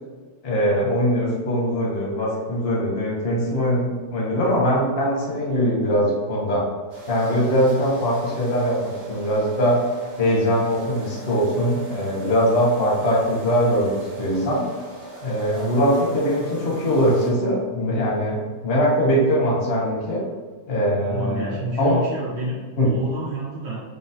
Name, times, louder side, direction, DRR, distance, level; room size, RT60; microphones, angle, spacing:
voice 1, 0.4-6.6 7.1-9.8 10.2-14.7 15.2-20.2 20.7-22.0 22.8-22.9, equal, 55° left, -4 dB, 0.7 m, -21 dB
sound 1, 6.9-17.3, right 4 dB, 35° right, 0.8 m, -39 dB
voice 2, 21.0-23.8, right 2 dB, 75° right, -7 dB, 1.2 m, -29 dB
3.7 x 2.1 x 2.6 m, 1.4 s
omnidirectional pair, 1.9 m